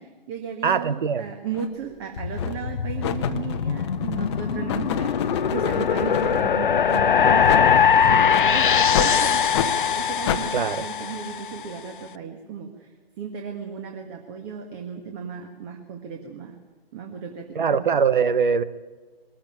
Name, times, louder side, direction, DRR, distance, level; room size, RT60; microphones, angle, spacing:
voice 1, 0.0-16.6 16.9-18.1, right 7 dB, 25° right, 1.6 m, -35 dB
voice 2, 0.6-1.2 10.5-10.8 17.5-18.6, right 6 dB, 55° right, 1.1 m, -22 dB
sound 1, 1.5-1.7 2.4-2.7 3.0-6.4 6.9-7.0 7.5-7.6 8.3-8.5 8.9-9.1 9.5-9.7 10.3-10.4, left 9 dB, 30° left, 1.1 m, -29 dB
sound 2, 2.2-11.5, left 7 dB, 60° left, 0.7 m, -21 dB
21.5 x 14.5 x 9.0 m
figure-of-eight pair, 135°, 30 cm